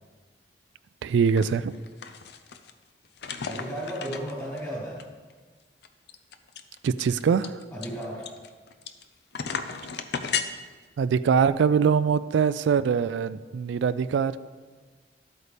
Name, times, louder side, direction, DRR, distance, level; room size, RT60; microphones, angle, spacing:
voice 1, 1.0-1.7 6.8-7.5 11.0-14.4, right 6 dB, 85° right, 14 dB, 0.3 m, -23 dB
sound 1, 1.3-1.5 1.7-2.7 3.2-4.6 5.0-5.1 5.3-5.4 5.8-9.0 9.3-10.5, left 6 dB, 65° left, 0.6 m, -34 dB
voice 2, 3.4-5.0 7.7-8.3, equal, 20° left, -6 dB, 3.4 m, -34 dB
12.5 x 8.2 x 3.4 m, 1.4 s
head